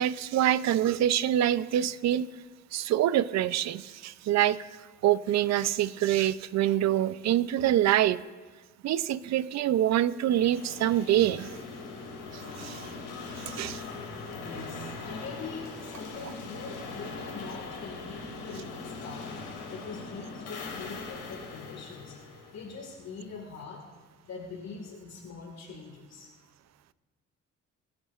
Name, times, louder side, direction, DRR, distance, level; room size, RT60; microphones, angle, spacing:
voice 1, 0.0-2.3 2.7-4.6 5.0-8.2 8.8-11.5 12.3-12.9 13.4-13.8, right 12 dB, 60° right, 17 dB, 0.5 m, -25 dB
sound 1, 10.3-23.2, left 3 dB, 90° left, 2.5 m, -41 dB
voice 2, 14.4-22.2 22.5-23.8 24.2-26.3, left 4 dB, 60° left, 1 dB, 1.8 m, -43 dB
22.5 x 8.7 x 2.4 m, 1.4 s
cardioid pair, 90°, 30 cm